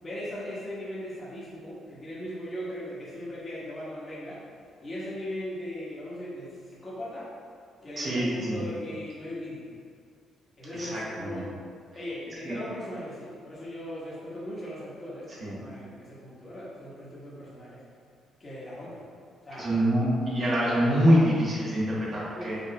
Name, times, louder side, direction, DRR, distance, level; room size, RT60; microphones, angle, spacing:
voice 1, 0.0-4.4 4.8-7.3 7.8-9.7 10.6-11.5 11.9-17.8 18.4-19.0 19.4-19.8 22.3-22.6, equal, 30° left, -9 dB, 1.5 m, -38 dB
voice 2, 8.0-8.6 10.7-11.4 12.4-12.6 15.4-15.6 19.6-22.6, equal, 45° right, -7 dB, 1.3 m, -25 dB
5.1 x 3.1 x 2.3 m, 2.1 s
cardioid pair, 90°, 0 cm